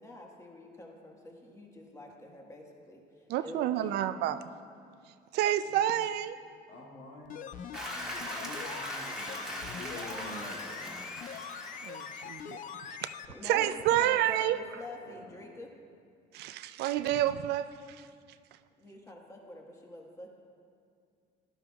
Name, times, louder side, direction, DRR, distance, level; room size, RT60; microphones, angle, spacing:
voice 1, 0.0-3.9 13.3-15.7 18.8-20.3, left 1 dB, 20° left, 0 dB, 1.5 m, -46 dB
voice 2, 3.3-4.4 5.1-6.4 11.8-13.1 13.4-14.6 16.3-18.1 18.5-18.6, right 12 dB, 75° right, 12 dB, 0.4 m, -30 dB
voice 3, 6.7-7.5 7.8-11.1 15.0-15.6, left 1 dB, 80° left, -2 dB, 2.1 m, -48 dB
sound 1, 7.3-13.3 13.6-13.7, left 8 dB, 50° left, 0.5 m, -43 dB
Applause, 7.7-12.8, equal, 5° right, 1.6 m, -40 dB
15.0 x 11.5 x 2.4 m, 2.3 s
cardioid pair, 110°, 17 cm